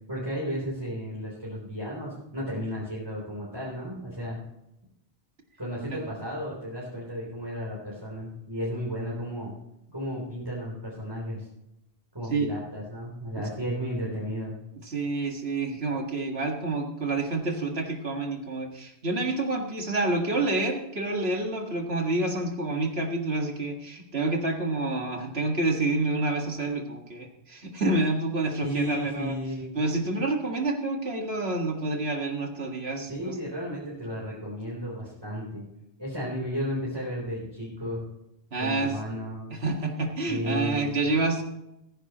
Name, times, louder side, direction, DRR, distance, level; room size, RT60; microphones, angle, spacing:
voice 1, 0.1-4.4 5.6-9.5 9.9-11.5 12.1-14.6 28.6-29.8 33.1-35.7 36.0-38.1 38.6-39.5 40.3-41.0, equal, 20° right, -6 dB, 3.7 m, -33 dB
voice 2, 14.9-29.3 29.8-33.3 38.5-39.0 39.5-41.4, right 2 dB, 70° right, 2 dB, 2.1 m, -28 dB
19.5 x 10.0 x 3.0 m, 0.88 s
omnidirectional pair, 1.1 m